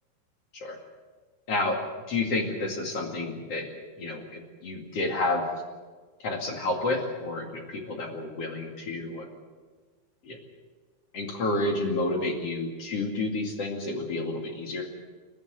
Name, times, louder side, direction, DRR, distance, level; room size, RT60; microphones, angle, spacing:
voice 1, 1.5-1.8 2.1-3.7 4.0-5.4 6.2-9.3 10.2-10.4 11.1-14.8, left 2 dB, 45° left, 2 dB, 2.2 m, -30 dB
29.0 x 13.0 x 8.2 m, 1.4 s
omnidirectional pair, 5.7 m